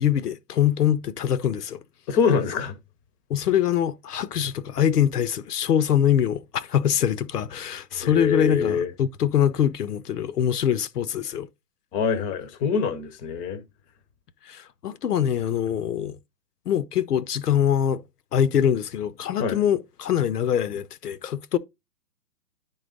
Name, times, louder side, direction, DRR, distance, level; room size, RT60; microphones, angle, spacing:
voice 1, 0.0-1.8 3.3-11.5 14.4-16.2 16.7-18.0 18.3-21.6, left 9 dB, 70° left, 0.7 m, -23 dB
voice 2, 2.1-2.8 7.9-8.9 11.9-13.6 19.4-19.6, left 6 dB, 15° left, 0.7 m, -24 dB
10.5 x 3.9 x 3.8 m
figure-of-eight pair, 125°, 49 cm